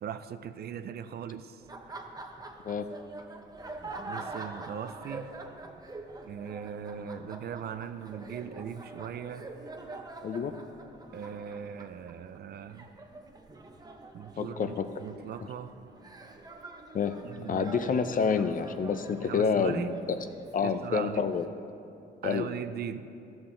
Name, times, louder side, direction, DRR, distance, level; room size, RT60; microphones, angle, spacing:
voice 1, 0.0-2.0 4.1-5.3 6.2-9.5 11.1-13.0 14.1-15.8 17.2-17.8 19.2-20.0 20.6-21.3 22.2-23.0, right 8 dB, 55° right, 11 dB, 0.4 m, -39 dB
Laughter, 1.6-21.5, right 2 dB, 20° right, 0.7 m, -45 dB
voice 2, 10.2-10.5 14.4-14.9 16.9-17.1 17.5-19.8 20.5-21.5 22.2-22.5, left 6 dB, 45° left, 9 dB, 0.6 m, -28 dB
12.5 x 6.1 x 3.8 m, 2.6 s
cardioid pair, 90°, 20 cm